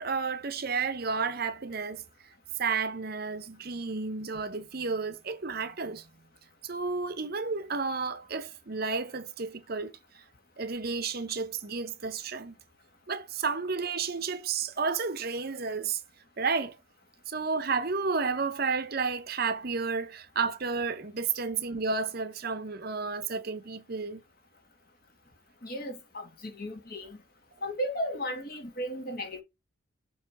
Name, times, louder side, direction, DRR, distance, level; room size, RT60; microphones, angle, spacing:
voice 1, 0.0-2.0 2.6-6.1 6.6-9.9 10.6-12.6 13.1-16.0 16.4-16.8 17.3-24.2, right 4 dB, 45° right, 0.8 m, -31 dB
voice 2, 25.6-27.2 27.6-29.4, equal, 45° left, 2.0 m, -35 dB
6.9 x 3.1 x 5.5 m
head